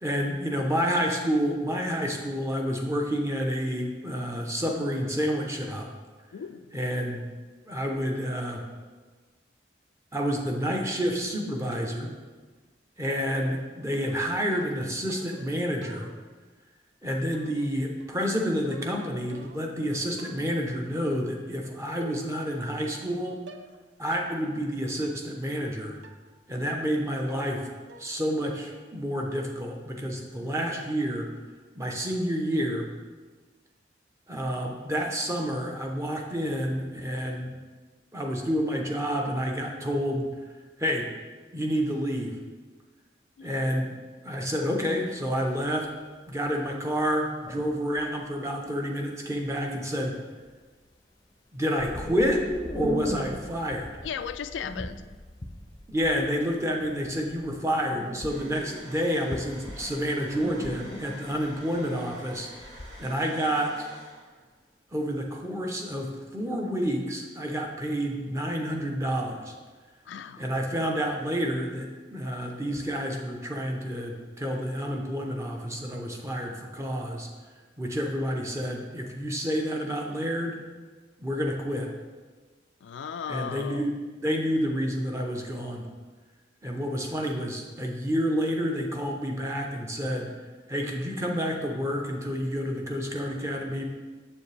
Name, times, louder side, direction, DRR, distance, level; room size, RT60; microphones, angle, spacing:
voice 1, 0.0-5.9 6.7-7.2 7.7-8.6 10.1-12.1 13.0-16.1 17.0-23.4 24.0-26.0 26.5-27.7 28.0-31.3 31.8-32.9 34.3-37.6 38.1-40.3 40.8-41.1 41.5-42.4 43.4-43.9 44.2-45.9 46.3-50.1 51.5-52.4 52.7-53.9 55.9-62.5 63.0-63.9 64.9-69.5 70.4-77.3 77.8-80.6 81.2-81.9 83.3-85.9 86.6-90.3 90.7-93.9, equal, 15° right, 1 dB, 0.7 m, -29 dB
voice 2, 6.3-6.7 30.2-30.7 43.4-43.5 54.0-55.0 70.1-70.4 82.8-83.9, left 7 dB, 85° left, 11 dB, 0.3 m, -37 dB
sound 1, 11.7-12.3 13.4-15.5 15.8-16.5 17.3-17.7 18.0-19.8 20.2-20.6 21.5-21.6 22.0-22.5 22.7-23.1 23.5-23.8 24.1-24.4 24.8-24.9 26.0-26.3 26.7-27.0 27.3-27.6 27.9-28.3 28.5-28.9, right 2 dB, 75° right, 0.5 m, -48 dB
sound 2, 45.0-45.1 45.6-45.8 46.5-46.6 47.5-48.1 49.5-49.6 49.9-50.3 51.8-63.0, equal, 20° left, 0.6 m, -37 dB
sound 3, 58.3-65.9 66.4-66.5 68.0-68.5 69.6-73.7 74.0-74.3 74.6-75.8, equal, 40° right, 2.3 m, -50 dB
7.4 x 7.1 x 3.4 m, 1.4 s
head